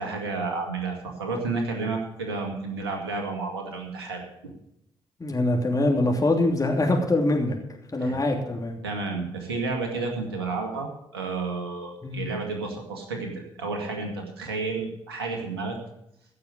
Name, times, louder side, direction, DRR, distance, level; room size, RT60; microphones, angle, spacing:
voice 1, 0.0-4.2 8.0-8.2 8.8-15.8, right 3 dB, 90° right, 2 dB, 2.0 m, -31 dB
voice 2, 5.2-7.5 7.9-8.8 12.0-12.2, left 2 dB, 25° left, 1 dB, 3.0 m, -23 dB
15.5 x 6.9 x 8.0 m, 0.79 s
hypercardioid pair, 40°, 13 cm